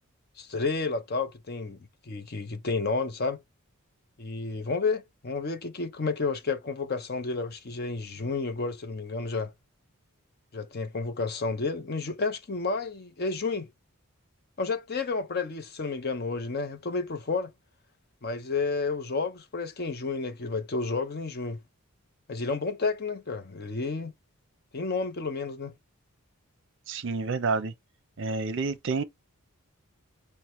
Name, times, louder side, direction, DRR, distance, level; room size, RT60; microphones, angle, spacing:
voice 1, 0.4-1.8 2.1-3.4 4.2-9.5 10.5-13.7 14.6-17.5 18.2-21.6 22.3-24.1 24.7-25.7, left 4 dB, 45° left, 0.6 m, -31 dB
voice 2, 26.9-27.7 28.2-29.0, right 4 dB, 55° right, 0.6 m, -29 dB
5.7 x 2.1 x 3.1 m
head